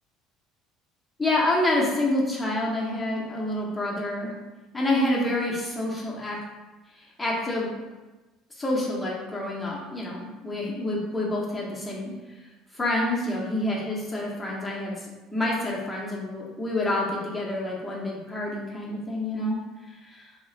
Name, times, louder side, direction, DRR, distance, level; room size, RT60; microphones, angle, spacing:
voice 1, 1.2-4.3 4.7-6.4 7.0-7.7 8.6-12.1 12.7-15.0 15.3-19.6 19.9-20.3, left 1 dB, 15° left, -4 dB, 0.9 m, -28 dB
2.3 x 2.1 x 3.8 m, 1.1 s
hypercardioid pair, 60°, 0 cm